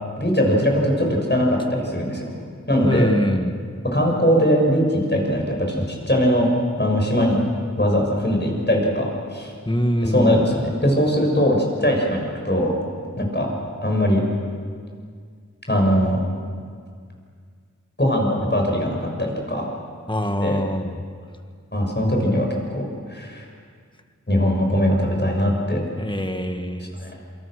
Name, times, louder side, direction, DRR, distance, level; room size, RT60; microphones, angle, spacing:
voice 1, 0.2-2.3 2.7-3.1 3.9-6.5 6.8-7.4 7.8-9.5 10.0-12.7 13.2-13.5 13.8-14.2 15.7-16.2 18.0-19.7 20.4-20.6 21.7-22.8 23.1-23.5 24.3-25.8 27.0-27.1, equal, 35° left, 0 dB, 7.0 m, -20 dB
voice 2, 2.8-3.6 9.7-10.4 20.1-21.0 26.0-26.9, equal, 15° left, 7 dB, 1.8 m, -23 dB
27.0 x 25.0 x 6.6 m, 2.1 s
wide cardioid pair, 45°, 31 cm